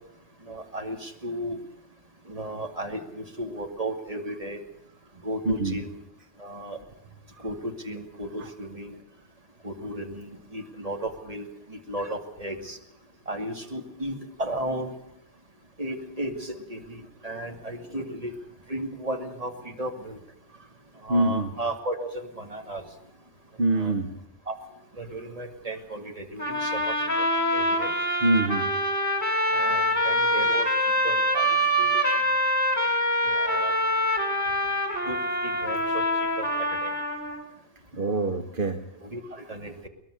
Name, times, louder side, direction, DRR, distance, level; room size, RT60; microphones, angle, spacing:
voice 1, 0.5-1.6 2.3-4.6 5.2-5.9 6.4-6.8 7.4-9.0 9.6-12.8 13.3-14.9 15.8-18.3 18.7-20.2 21.0-22.8 23.7-23.9 24.5-24.6 25.0-27.3 27.5-27.9 29.5-30.7 31.0-32.0 33.2-33.7 35.1-35.2 35.4-36.0 36.4-36.5 36.8-36.9 39.0-39.9, right 1 dB, 30° right, 4 dB, 2.6 m, -34 dB
voice 2, 5.4-5.8 8.4-8.5 21.1-21.5 23.6-24.1 28.2-28.6 32.8-33.0 33.6-33.8 37.9-38.8 39.3-39.4, right 2 dB, 50° right, 8 dB, 1.4 m, -25 dB
sound 1, 26.4-37.4, equal, 15° left, 3.6 m, -25 dB
22.5 x 20.5 x 6.5 m, 0.77 s
omnidirectional pair, 1.2 m